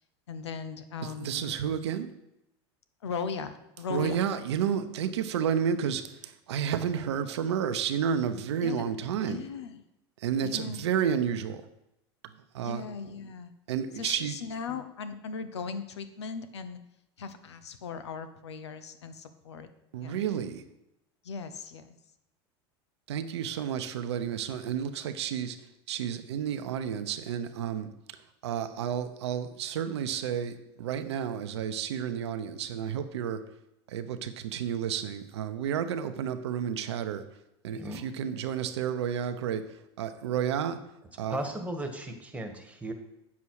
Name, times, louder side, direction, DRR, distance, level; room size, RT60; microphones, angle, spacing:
voice 1, 0.3-1.5 3.0-4.3 8.6-8.9 9.3-9.8 10.4-10.8 12.6-13.5 13.9-16.8 17.2-19.7 20.0-20.2 21.2-21.9, left 5 dB, 90° left, 10 dB, 0.8 m, -38 dB
voice 2, 1.0-2.1 3.9-9.4 10.2-11.6 12.2-12.8 13.7-14.4 19.9-20.6 23.1-25.6 25.9-33.4 33.9-37.2 37.6-40.8 41.2-41.4, right 8 dB, 80° right, 10 dB, 0.8 m, -31 dB
voice 3, 37.7-38.0 41.3-42.9, right 1 dB, 10° right, 5 dB, 1.6 m, -36 dB
8.4 x 7.1 x 4.8 m, 0.86 s
hypercardioid pair, 95°, 14 cm